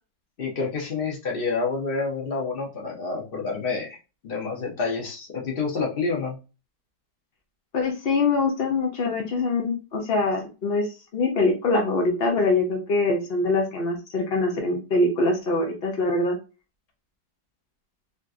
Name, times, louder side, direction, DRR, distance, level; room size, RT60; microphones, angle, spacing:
voice 1, 0.4-4.0 4.2-6.3, left 4 dB, 45° left, -1 dB, 0.7 m, -28 dB
voice 2, 7.7-16.4, left 3 dB, 80° left, 2 dB, 0.5 m, -24 dB
3.4 x 2.8 x 2.4 m, 0.31 s
omnidirectional pair, 1.9 m